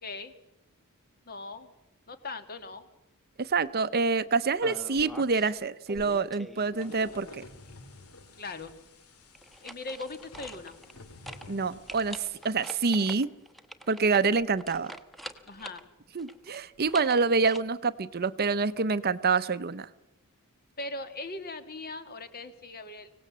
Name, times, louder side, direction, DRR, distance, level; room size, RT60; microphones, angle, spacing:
voice 1, 0.0-0.3 1.3-1.7 2.1-2.9 8.4-8.7 9.6-10.7 15.5-15.8 20.8-23.1, left 3 dB, 45° left, 9 dB, 1.9 m, -39 dB
voice 2, 3.4-7.4 11.5-13.3 13.9-14.9 16.1-19.9, right 4 dB, 45° right, 15 dB, 0.7 m, -27 dB
sound 1, 4.6-5.5 5.9-7.2 9.3-11.0 11.3-11.5 11.9-15.8 16.2-17.6, equal, ahead, 1.2 m, -45 dB
sound 2, 6.8-12.7, left 2 dB, 80° left, 2.4 m, -51 dB
25.0 x 17.5 x 7.5 m, 0.91 s
head